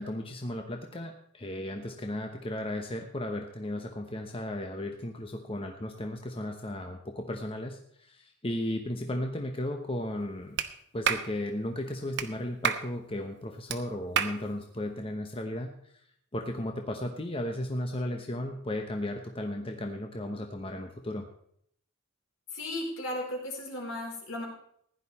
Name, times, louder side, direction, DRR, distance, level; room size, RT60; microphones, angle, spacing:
voice 1, 0.0-10.6 10.9-15.9 16.3-21.2, left 1 dB, 25° left, 4 dB, 1.0 m, -35 dB
Clapping, 10.6-10.7 11.0-11.3 12.2-12.3 12.6-12.9 13.7-13.8 14.2-14.4, right 8 dB, 55° right, 1.0 m, -28 dB
voice 2, 22.5-24.4, left 1 dB, 70° left, 0 dB, 4.4 m, -35 dB
15.5 x 10.5 x 4.3 m, 0.68 s
head